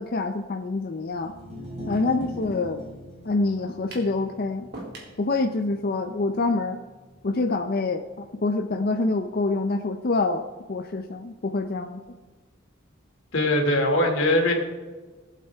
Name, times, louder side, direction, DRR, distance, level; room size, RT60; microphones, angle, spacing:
voice 1, 0.0-1.3 1.9-2.8 3.3-4.7 5.2-6.8 7.2-12.0, left 3 dB, 50° left, 6 dB, 0.5 m, -26 dB
sound 1, 1.1-7.5, left 1 dB, 35° right, 2.6 m, -41 dB
sound 2, 3.9-4.2 4.7-5.2, right 2 dB, 55° right, 2.9 m, -39 dB
voice 2, 13.3-14.5, left 1 dB, 90° left, 1 dB, 2.5 m, -21 dB
19.5 x 8.4 x 3.5 m, 1.4 s
head